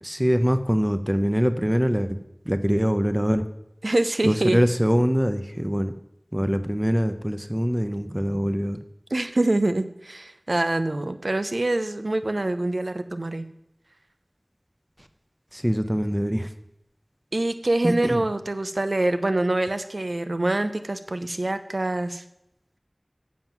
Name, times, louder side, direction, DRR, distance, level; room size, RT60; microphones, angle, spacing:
voice 1, 0.0-2.2 2.5-3.4 4.2-5.9 6.3-8.8 15.5-16.5 17.8-18.2, equal, 15° right, 9 dB, 0.6 m, -23 dB
voice 2, 3.8-4.6 9.1-13.5 17.3-22.2, right 2 dB, 80° right, 10 dB, 0.6 m, -25 dB
7.7 x 7.3 x 5.9 m, 0.83 s
wide cardioid pair, 40°, 0 cm